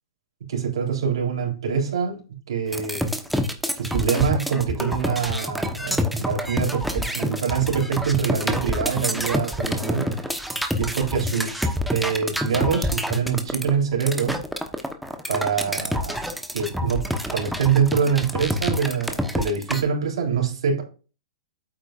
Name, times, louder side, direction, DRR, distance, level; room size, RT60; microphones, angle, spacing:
voice 1, 0.4-3.1 3.8-10.1 10.8-14.4 15.3-16.2 16.5-20.8, right 7 dB, 70° right, 3.6 m, -25 dB
sound 1, 2.7-19.8, equal, ahead, 1.1 m, -27 dB
8.7 x 8.2 x 2.5 m
hypercardioid pair, 130°, 3 cm